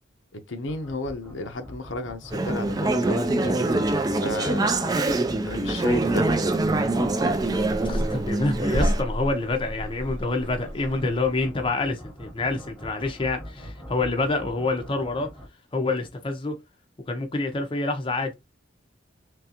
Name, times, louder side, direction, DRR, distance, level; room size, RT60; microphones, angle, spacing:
voice 1, 0.3-5.0 5.4-6.3, left 1 dB, 80° left, 0.7 m, -33 dB
sound 1, 0.7-15.5, equal, ahead, 1.1 m, -43 dB
Conversation / Chatter, 2.3-9.0, right 2 dB, 20° right, 0.4 m, -24 dB
sound 2, 6.5-11.5, equal, 75° right, 1.0 m, -32 dB
voice 2, 7.8-15.3 15.7-16.6 17.1-18.3, left 2 dB, 25° left, 0.6 m, -27 dB
3.8 x 3.3 x 2.8 m
head